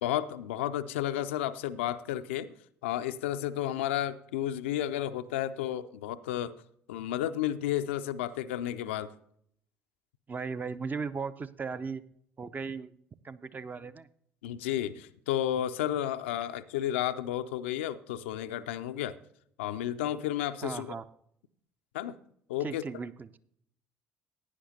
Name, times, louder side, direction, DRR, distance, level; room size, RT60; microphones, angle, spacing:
voice 1, 0.0-2.5 2.8-6.5 6.9-9.1 14.4-19.2 19.6-20.9 21.9-22.1 22.5-22.8, left 12 dB, 70° left, 11 dB, 0.4 m, -32 dB
voice 2, 10.3-12.0 12.4-12.9 13.2-14.1 20.6-21.0 22.6-23.3, right 5 dB, 25° right, 13 dB, 0.5 m, -37 dB
16.0 x 9.8 x 2.7 m, 0.69 s
figure-of-eight pair, 55°, 7 cm